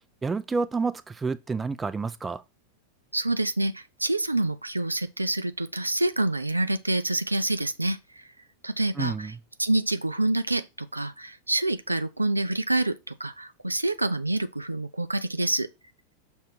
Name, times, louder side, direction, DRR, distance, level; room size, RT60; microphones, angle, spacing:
voice 1, 0.2-2.4 9.0-9.4, right 4 dB, 15° right, 0.5 m, -29 dB
voice 2, 3.1-8.2 8.6-9.3 9.6-15.7, right 2 dB, 85° right, 0.5 m, -27 dB
6.1 x 3.2 x 5.6 m
figure-of-eight pair, 90°, 0 cm